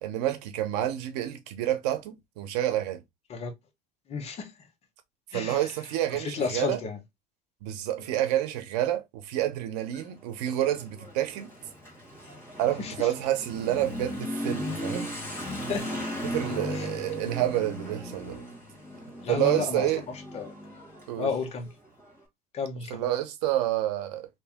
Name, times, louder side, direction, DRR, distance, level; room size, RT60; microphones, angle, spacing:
voice 1, 0.0-3.0 5.3-6.8 7.6-11.5 12.6-15.1 16.2-18.4 19.3-20.0 21.1-21.3 22.9-24.3, right 13 dB, 85° right, 0.8 m, -28 dB
voice 2, 4.1-4.5 5.3-5.6 6.1-7.0 12.8-13.1 15.7-15.9 16.7-16.9 19.2-19.9 20.3-20.5 21.2-21.7 22.5-23.0, left 5 dB, 30° left, 1.0 m, -32 dB
Motorcycle / Accelerating revving vroom, 9.8-22.1, left 1 dB, 10° left, 1.3 m, -37 dB
2.9 x 2.7 x 3.4 m
cardioid pair, 150°, 20 cm